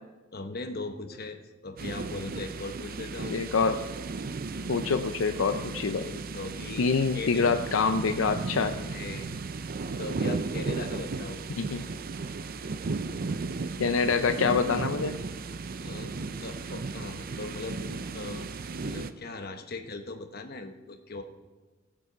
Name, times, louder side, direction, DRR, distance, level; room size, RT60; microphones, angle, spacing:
voice 1, 0.3-3.4 6.0-7.5 8.7-9.3 10.0-11.4 15.8-18.5 18.8-21.2, left 3 dB, 50° left, 6 dB, 1.0 m, -39 dB
sound 1, 1.8-19.1, right 3 dB, 45° right, 0.5 m, -35 dB
voice 2, 3.3-3.8 4.7-6.0 6.8-8.8 11.6-11.8 13.8-15.2, left 5 dB, 75° left, 8 dB, 0.5 m, -26 dB
17.5 x 7.7 x 5.0 m, 1.3 s
head